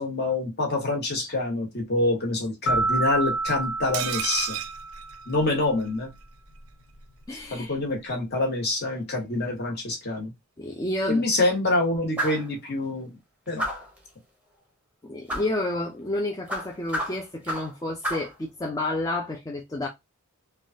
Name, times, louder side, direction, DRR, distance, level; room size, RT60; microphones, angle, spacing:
voice 1, 0.0-4.6 5.3-6.1 7.5-10.3 11.1-13.2 13.5-13.7, left 2 dB, 50° left, 1.2 m, -26 dB
sound 1, 2.7-5.4, right 3 dB, 65° left, 0.7 m, -28 dB
sound 2, 3.9-5.9 6.2-6.3 6.6-6.7, right 11 dB, 75° right, 0.4 m, -33 dB
voice 2, 7.3-7.8 10.6-11.2 15.0-19.9, left 1 dB, 15° left, 0.4 m, -30 dB
sound 3, 12.2-12.5 13.6-14.0 15.3-15.5 16.5-17.8 18.0-18.3, equal, 5° right, 0.7 m, -30 dB
3.2 x 2.3 x 2.7 m
head